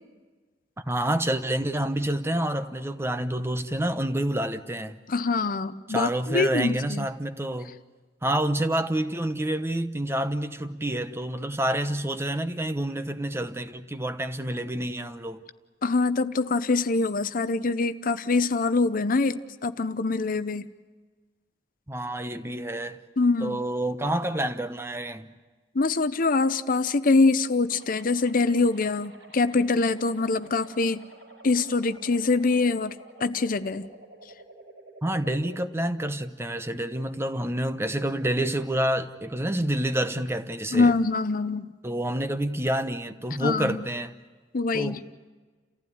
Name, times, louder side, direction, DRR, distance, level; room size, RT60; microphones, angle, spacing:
voice 1, 0.8-5.0 5.9-7.7 8.2-15.4 21.9-23.0 23.4-25.3 35.0-40.9 41.8-44.1 44.7-45.0, right 1 dB, 15° right, 0.9 m, -28 dB
voice 2, 5.1-7.1 15.8-20.7 23.2-23.6 25.7-31.0 31.4-33.9 40.7-41.7 43.4-43.8 44.5-45.0, left 3 dB, 50° left, 0.7 m, -24 dB
sound 1, 27.7-35.7, right 1 dB, 80° right, 4.8 m, -50 dB
29.5 x 15.5 x 9.5 m
head